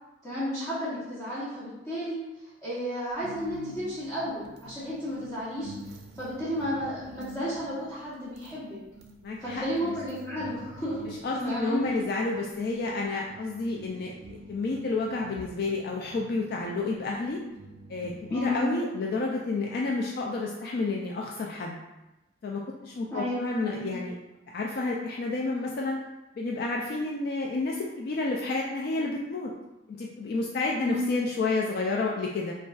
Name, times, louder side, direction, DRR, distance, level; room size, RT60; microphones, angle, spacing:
voice 1, 0.2-2.2 2.6-5.7 6.2-8.8 9.4-11.1 11.3-11.9 18.3-18.7 23.1-23.9 30.8-31.1, equal, 20° left, -11 dB, 1.0 m, -32 dB
sound 1, 3.2-18.7, right 2 dB, 60° right, 0.4 m, -47 dB
voice 2, 9.2-9.9 11.1-14.1 14.5-17.4 17.9-21.8 22.4-24.1 24.5-26.0 26.4-29.5 29.9-32.6, left 3 dB, 55° left, -1 dB, 0.3 m, -30 dB
5.2 x 2.3 x 2.3 m, 0.99 s
head